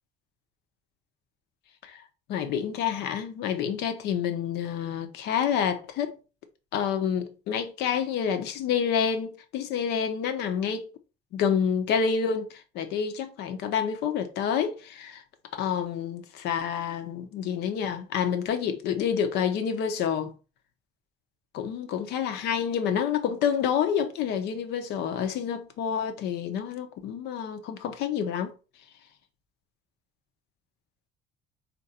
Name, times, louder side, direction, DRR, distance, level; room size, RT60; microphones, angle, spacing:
voice 1, 2.3-6.2 6.7-10.9 11.3-15.2 15.6-20.3 21.5-28.5, left 7 dB, 85° left, 0.8 m, -28 dB
4.4 x 2.6 x 4.2 m
cardioid pair, 110°, 17 cm